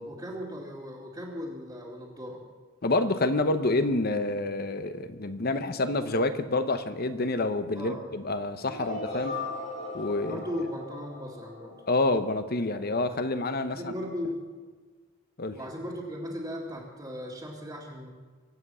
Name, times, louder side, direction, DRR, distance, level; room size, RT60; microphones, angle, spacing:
voice 1, 0.1-2.4 7.8-8.1 8.7-9.5 10.2-11.8 13.7-14.4 15.5-18.1, equal, 20° right, -7 dB, 2.2 m, -37 dB
voice 2, 2.8-9.3 9.9-10.4 11.9-13.9 15.4-15.6, left 2 dB, 50° left, 10 dB, 1.0 m, -28 dB
sound 1, 8.7-12.6, left 3 dB, 65° left, 6.1 m, -38 dB
24.0 x 8.8 x 5.6 m, 1.5 s
head